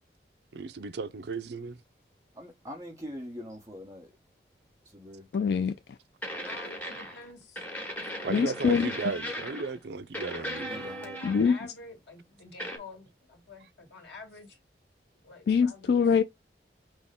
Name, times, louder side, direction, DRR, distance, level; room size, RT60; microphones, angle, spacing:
voice 1, 0.5-1.8 8.2-10.9, right 4 dB, 70° right, 0.5 m, -35 dB
voice 2, 2.3-4.1 4.8-5.3 10.5-11.2, equal, 15° right, 1.1 m, -43 dB
voice 3, 5.3-5.8 8.3-8.9 11.2-11.6 15.5-16.2, left 6 dB, 65° left, 0.3 m, -24 dB
sound 1, 5.3-5.5 6.2-7.3 7.6-9.8 10.1-11.7 12.6-12.8, equal, 10° left, 1.2 m, -38 dB
voice 4, 6.5-7.6 8.1-8.8 11.0-14.6 15.2-16.2, left 3 dB, 90° left, 2.0 m, -48 dB
6.1 x 2.2 x 3.5 m
head